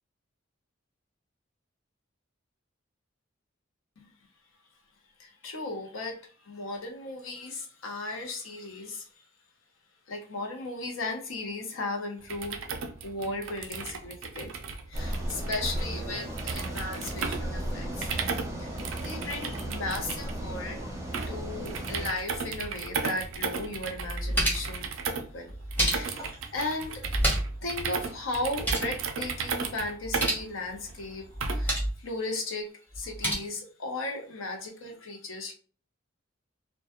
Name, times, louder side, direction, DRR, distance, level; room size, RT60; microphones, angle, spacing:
voice 1, 5.2-9.3 10.1-18.1 18.6-20.8 21.3-27.1 27.6-32.7 32.9-35.5, left 2 dB, 90° left, 4 dB, 0.6 m, -36 dB
sound 1, 12.2-31.8, right 5 dB, 90° right, 0.4 m, -36 dB
sound 2, 14.9-22.1, right 1 dB, 15° right, 0.6 m, -35 dB
sound 3, 23.3-23.4 23.9-24.8 25.5-26.3 27.0-27.7 27.9-28.0 28.4-28.9 30.0-30.5 31.3-32.0 32.9-33.3, right 1 dB, 10° left, 0.8 m, -29 dB
2.2 x 2.1 x 2.8 m, 0.41 s
head